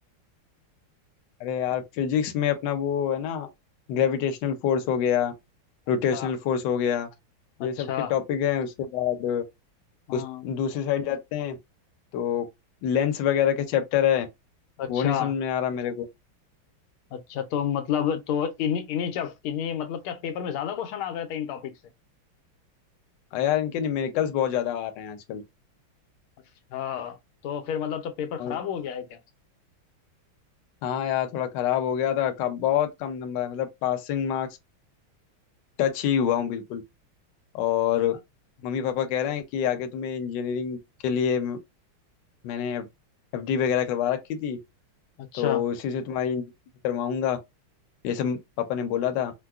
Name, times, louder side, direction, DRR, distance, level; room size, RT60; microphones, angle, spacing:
voice 1, 1.4-3.5 3.9-5.3 5.9-7.1 7.6-9.4 10.1-11.6 12.1-12.5 12.8-14.3 14.9-16.1 23.3-25.4 28.4-28.5 30.8-34.5 35.8-36.8 37.5-38.2 38.6-40.8 41.0-41.6 42.4-42.8 43.3-44.6 45.3-46.4 46.8-47.4 48.0-49.3, left 9 dB, 70° left, 1.2 m, -26 dB
voice 2, 7.6-8.1 10.1-10.5 14.8-15.3 17.1-21.8 26.7-27.2 27.4-29.2 45.2-45.6, left 9 dB, 90° left, 1.5 m, -30 dB
4.6 x 2.1 x 2.3 m
omnidirectional pair, 2.3 m